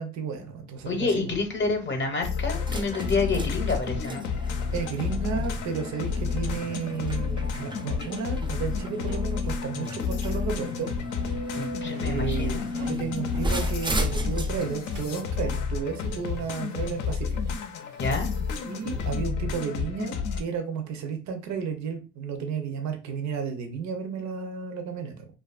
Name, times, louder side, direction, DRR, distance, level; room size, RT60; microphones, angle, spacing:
voice 1, 0.0-1.3 4.7-10.9 12.0-17.4 18.6-25.3, right 6 dB, 65° right, 0.6 m, -33 dB
sound 1, 0.7-16.4, left 1 dB, 15° right, 0.4 m, -35 dB
voice 2, 0.9-4.3 11.6-12.6 18.0-18.3, left 3 dB, 40° left, 0.7 m, -28 dB
sound 2, 2.2-20.4, left 5 dB, 85° left, 0.5 m, -31 dB
sound 3, 4.5-5.1 5.6-6.3 6.7-6.8 7.6-7.7 8.1-8.3 9.0-9.5 10.0-10.1 10.4-10.7 11.1-12.3 12.6-15.6 15.8-19.3 20.0-20.1 20.5-20.6, right 5 dB, 90° right, 1.3 m, -48 dB
2.6 x 2.4 x 2.3 m
cardioid pair, 90°, 30 cm